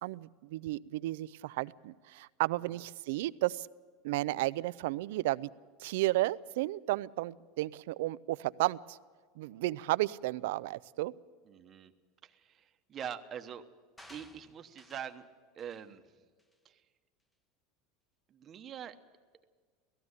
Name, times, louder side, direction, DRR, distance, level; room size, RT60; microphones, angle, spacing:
voice 1, 0.0-3.7 4.0-5.5 5.8-9.0 9.4-11.1, right 17 dB, 75° right, 17 dB, 0.5 m, -33 dB
voice 2, 11.5-11.9 12.2-13.6 14.1-15.3 15.5-16.0 16.6-16.8 18.3-19.0, right 8 dB, 25° right, 8 dB, 1.0 m, -44 dB
sound 1, 14.0-15.2 15.6-15.9 16.4-16.5, left 1 dB, 10° left, 0.9 m, -56 dB
18.0 x 15.0 x 9.7 m, 1.5 s
supercardioid pair, 160°, 0 cm